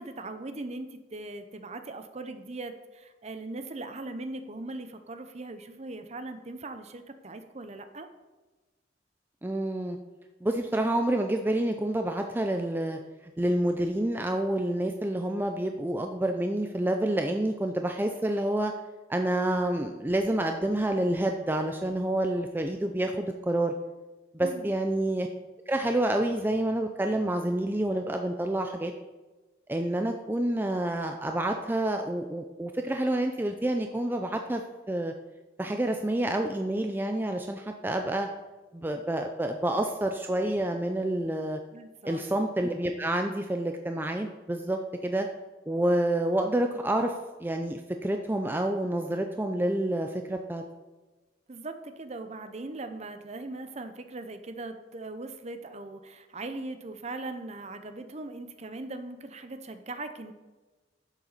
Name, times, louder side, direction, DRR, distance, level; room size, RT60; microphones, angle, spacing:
voice 1, 0.0-8.1 24.4-24.7 41.7-42.2 51.5-60.3, right 2 dB, 35° right, 8 dB, 0.8 m, -40 dB
voice 2, 9.4-10.0 10.4-13.0 13.4-18.7 19.1-23.7 24.3-25.3 25.7-28.9 29.7-35.1 35.6-38.3 38.7-41.6 42.0-45.3 45.7-47.1 47.4-50.6, right 1 dB, 10° right, 5 dB, 0.5 m, -28 dB
10.5 x 7.3 x 4.1 m, 1.2 s
head